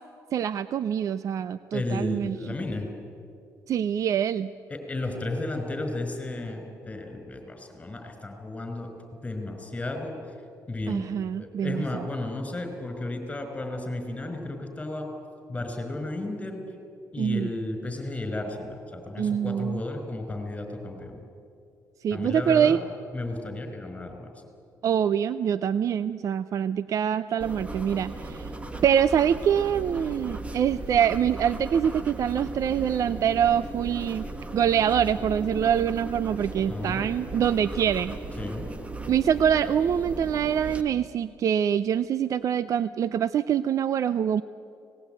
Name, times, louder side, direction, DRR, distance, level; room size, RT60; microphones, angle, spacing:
voice 1, 0.3-2.5 3.7-4.5 10.9-11.8 17.2-17.5 19.2-19.8 22.0-22.8 24.8-28.5 28.8-34.3 34.5-38.2 39.1-44.4, right 8 dB, 55° right, 15 dB, 0.5 m, -25 dB
voice 2, 1.7-2.9 4.7-8.9 9.2-10.1 10.7-11.1 11.4-15.1 15.5-16.6 17.1-21.2 22.1-22.8 23.1-24.3 36.7-37.0 38.4-38.7, left 2 dB, 15° left, 5 dB, 5.1 m, -33 dB
sound 1, 27.4-40.8, right 2 dB, 20° right, 1.5 m, -37 dB
24.5 x 19.0 x 9.2 m, 2.5 s
cardioid pair, 105°, 7 cm